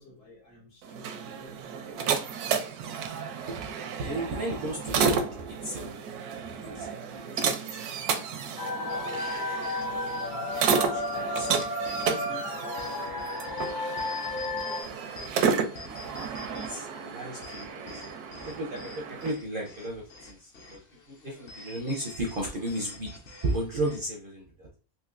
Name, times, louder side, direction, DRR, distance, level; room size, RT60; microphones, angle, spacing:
voice 1, 0.0-2.7 3.0-3.2, equal, 85° left, -3 dB, 1.9 m, -54 dB
sound 1, 0.8-19.3, right 6 dB, 80° right, 1.1 m, -32 dB
voice 2, 4.0-5.9 6.4-7.8 8.1-8.2 8.8-8.9 9.6-10.0 10.4-11.5 12.1-12.4 12.8-13.5 13.8-14.0 14.3-14.7 15.2-15.4 15.8-15.9 16.2-18.0 18.4-20.8 21.1-23.1 23.4-24.7, right 1 dB, 55° right, -1 dB, 0.6 m, -35 dB
sound 2, 8.6-14.8, left 2 dB, 70° left, 0.4 m, -32 dB
sound 3, 8.9-24.1, left 2 dB, 50° left, 0.8 m, -47 dB
4.0 x 2.7 x 2.4 m, 0.36 s
omnidirectional pair, 1.6 m